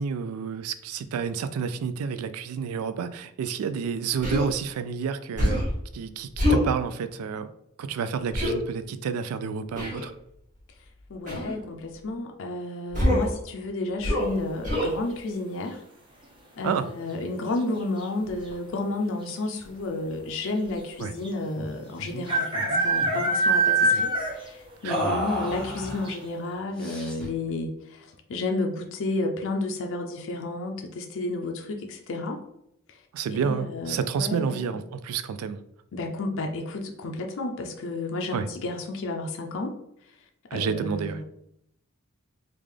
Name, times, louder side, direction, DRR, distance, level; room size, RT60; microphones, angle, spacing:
voice 1, 0.0-5.6 5.9-7.5 7.8-10.1 16.6-16.9 21.0-21.1 23.8-24.0 24.8-25.0 33.1-35.6 38.3-38.5 40.5-41.2, right 6 dB, 85° right, 12 dB, 0.3 m, -30 dB
Human voice, 4.2-4.5 5.4-5.7 6.4-6.7 8.3-8.5 9.7-10.1 11.3-11.5 12.9-13.3 14.0-14.3 14.6-14.9, left 1 dB, 40° right, 1.5 m, -24 dB
voice 2, 11.1-15.8 16.6-32.4 32.9-33.0 33.3-34.8 35.9-39.8 40.5-41.2, left 2 dB, 65° left, 3 dB, 0.5 m, -31 dB
sound 1, 14.7-15.2 17.0-17.4 17.7-17.8 18.0-18.5 19.3-19.4 19.6-19.7 21.2-21.3 22.3-24.6 24.9-25.0 25.5-25.6 26.1-26.2, right 2 dB, 25° right, 0.6 m, -24 dB
sound 2, 21.6-21.7 22.0-22.2 22.5-23.3 24.9-26.1 26.8-27.4, equal, 5° left, 1.0 m, -32 dB
3.6 x 2.4 x 3.2 m, 0.75 s
head